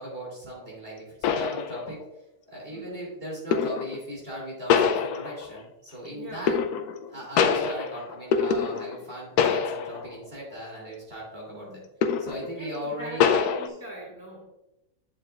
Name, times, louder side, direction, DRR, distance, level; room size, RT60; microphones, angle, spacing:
voice 1, 0.0-2.0 2.5-6.6 7.1-11.8 12.2-13.3, equal, 35° right, -4 dB, 3.3 m, -38 dB
sound 1, 0.6-0.7 1.2-2.2 3.5-4.0 4.7-5.6 6.5-7.1 7.4-9.1 9.4-10.1 10.5-10.7 12.0-12.5 13.2-13.7, left 7 dB, 75° left, 1.1 m, -25 dB
voice 2, 2.7-3.0 6.1-6.5 11.5-11.9 12.5-14.5, right 1 dB, 10° left, -4 dB, 1.8 m, -41 dB
8.7 x 7.2 x 2.4 m, 0.90 s
omnidirectional pair, 1.7 m